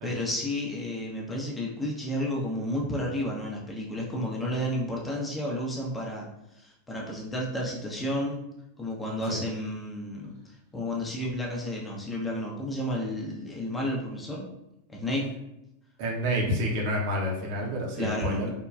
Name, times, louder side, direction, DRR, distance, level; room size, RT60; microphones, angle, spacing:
voice 1, 0.0-6.3 6.6-8.4 8.8-10.4 10.7-14.4 14.9-15.3 18.0-18.5, left 1 dB, 10° left, -2 dB, 0.6 m, -31 dB
voice 2, 16.0-18.5, equal, 45° right, -2 dB, 0.7 m, -29 dB
3.6 x 2.3 x 2.3 m, 0.86 s
figure-of-eight pair, 90°, 0 cm